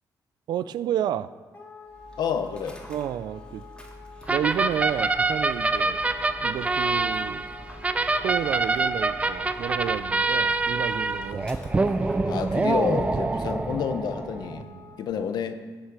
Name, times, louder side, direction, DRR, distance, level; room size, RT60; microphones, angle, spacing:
voice 1, 0.5-1.3 2.9-3.6 4.3-6.0 6.4-7.4 8.2-11.5 14.6-14.9, right 10 dB, 80° right, 16 dB, 0.4 m, -30 dB
Wind instrument woodwind instrument, 1.5-15.0, left 3 dB, 30° left, 2.2 m, -48 dB
Dog, 1.8-13.1, left 1 dB, 15° left, 2.1 m, -47 dB
voice 2, 2.2-2.8 12.3-14.7 15.0-15.6, left 7 dB, 75° left, 9 dB, 0.9 m, -29 dB
sound 1, 4.3-14.6, right 3 dB, 20° right, 0.4 m, -26 dB
18.0 x 6.4 x 4.8 m, 1.4 s
cardioid pair, 130°, 7 cm